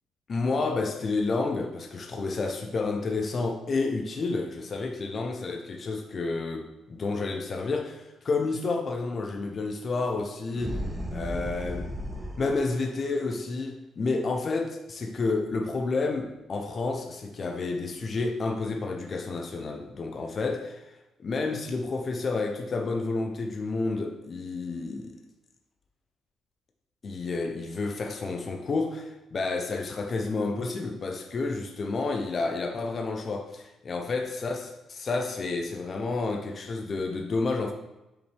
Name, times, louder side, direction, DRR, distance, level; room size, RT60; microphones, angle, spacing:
voice 1, 0.3-10.8 11.1-11.9 12.4-20.8 21.2-25.2 27.0-37.7, left 3 dB, 45° left, 3 dB, 0.7 m, -30 dB
sound 1, 10.5-12.7, equal, 10° right, 1.1 m, -34 dB
7.6 x 5.2 x 3.4 m, 0.97 s
cardioid pair, 90°, 0 cm